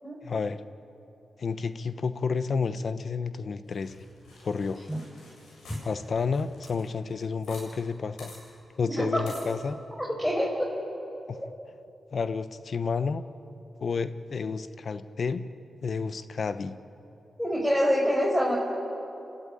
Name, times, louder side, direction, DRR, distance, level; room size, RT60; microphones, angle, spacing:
voice 1, 0.2-0.6 1.4-4.0 4.4-4.8 5.8-8.3 8.8-9.8 11.3-11.4 12.1-13.2 13.8-15.4 15.8-16.7, left 5 dB, 60° left, 12 dB, 1.0 m, -30 dB
sound 1, 3.7-7.7 7.9-8.0 8.2-8.4 9.3-9.5, left 2 dB, 85° left, 7.7 m, -49 dB
voice 2, 8.9-9.2 10.2-10.7 17.4-18.5, equal, 5° left, -3 dB, 5.6 m, -25 dB
30.0 x 13.5 x 9.1 m, 2.9 s
supercardioid pair, 45°, 0 cm